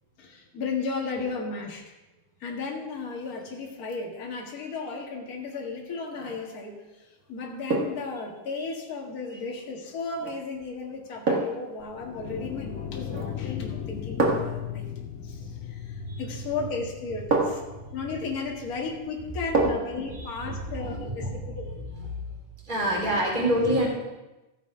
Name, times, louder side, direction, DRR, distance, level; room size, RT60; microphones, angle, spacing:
voice 1, 0.2-1.9 2.4-14.9 15.2-17.6 17.9-21.7, left 4 dB, 35° left, -1 dB, 1.7 m, -35 dB
sound 1, 6.1-6.5 7.7-8.1 10.2-10.4 11.3-11.7 13.1-13.4 14.2-14.6 16.3-16.4 17.3-17.8 19.5-20.0 20.4-20.5, right 3 dB, 60° right, 0.8 m, -27 dB
sound 2, 11.8-19.1, left 10 dB, 90° left, 1.5 m, -38 dB
voice 2, 20.8-21.5 22.7-23.9, right 1 dB, 15° right, -2 dB, 2.8 m, -26 dB
15.5 x 6.1 x 4.9 m, 1.0 s
omnidirectional pair, 4.0 m